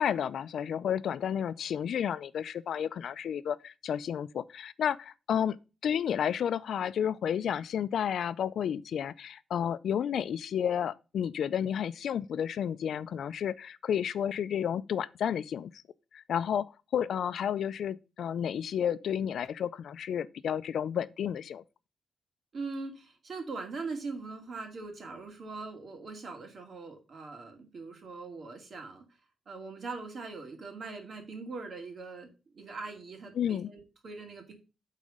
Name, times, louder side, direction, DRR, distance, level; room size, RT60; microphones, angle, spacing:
voice 1, 0.0-5.6 5.8-15.7 16.1-21.6 33.4-33.7, left 9 dB, 80° left, 0.4 m, -31 dB
voice 2, 22.5-29.0 29.5-34.5, right 3 dB, 50° right, 2.3 m, -41 dB
8.5 x 4.1 x 5.3 m
wide cardioid pair, 145°, 0 cm